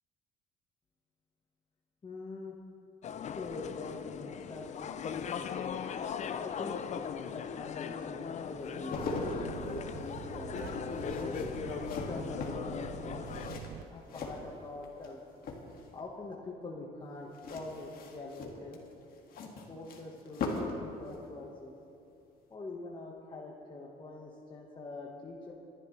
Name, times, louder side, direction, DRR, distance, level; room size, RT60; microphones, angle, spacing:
voice 1, 2.0-2.5 3.3-5.7 6.4-11.5 12.0-13.6 13.9-15.2 15.9-18.8 19.7-21.7 22.5-25.5, left 3 dB, 30° left, -2 dB, 1.5 m, -44 dB
sound 1, 3.0-13.6, left 7 dB, 45° left, 0.6 m, -39 dB
sound 2, 8.6-15.1 15.4-16.0 17.3-20.8 21.1-21.3, left 3 dB, 60° left, 2.1 m, -40 dB
sound 3, 8.9-13.8, right 9 dB, 85° right, 0.6 m, -45 dB
26.0 x 11.5 x 3.3 m, 2.7 s
cardioid pair, 110°, 17 cm